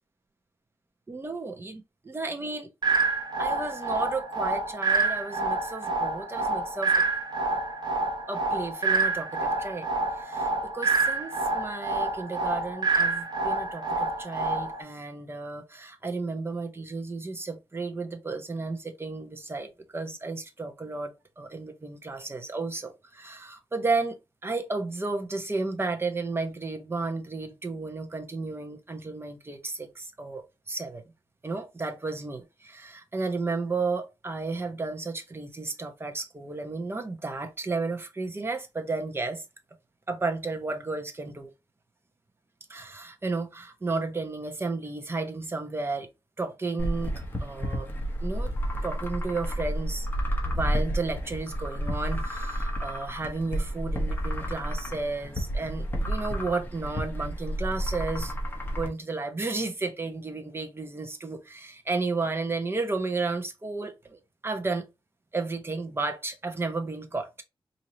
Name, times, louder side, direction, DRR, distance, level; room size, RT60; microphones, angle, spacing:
voice 1, 1.1-2.7 3.4-7.0 8.3-24.2 24.4-31.0 31.4-39.4 40.1-41.5 42.7-46.1 46.4-47.1 47.4-47.9 48.2-48.5 48.8-50.1 50.4-58.3 58.8-64.8 65.3-67.4, right 3 dB, 25° right, 0.9 m, -33 dB
sound 1, 2.8-14.8, right 3 dB, 50° right, 1.1 m, -27 dB
sound 2, 46.8-58.9, equal, 20° left, 0.9 m, -31 dB
4.6 x 2.7 x 2.7 m
wide cardioid pair, 145°, 9 cm